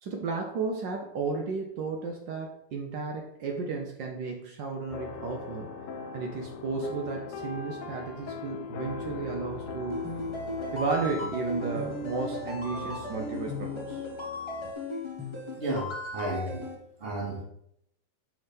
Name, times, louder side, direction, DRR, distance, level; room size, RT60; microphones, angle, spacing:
voice 1, 0.0-5.7 6.1-10.1 10.7-14.0, right 4 dB, 75° right, 1 dB, 1.4 m, -33 dB
sound 1, 4.9-14.7, left 4 dB, 70° left, 1.0 m, -40 dB
sound 2, 9.9-16.7, left 2 dB, 20° left, 0.9 m, -36 dB
voice 2, 15.6-16.6 17.0-17.4, right 1 dB, 35° right, 0 dB, 1.4 m, -32 dB
5.2 x 3.7 x 5.2 m, 0.75 s
omnidirectional pair, 2.0 m